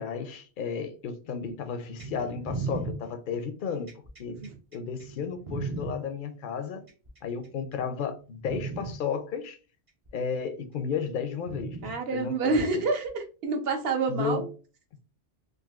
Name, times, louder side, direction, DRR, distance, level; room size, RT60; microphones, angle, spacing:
voice 1, 0.0-3.9 4.2-4.4 4.7-6.8 7.2-9.6 10.1-12.8 14.1-14.5, left 6 dB, 60° left, 0.6 m, -33 dB
sound 1, 2.0-5.9 6.9-7.5 8.0-8.2 8.5-8.9 10.1-10.2 11.5-11.9 13.1-13.2, right 4 dB, 40° right, 0.6 m, -36 dB
voice 2, 11.8-14.4, right 3 dB, 65° right, 0.9 m, -27 dB
3.8 x 2.5 x 2.3 m
omnidirectional pair, 1.1 m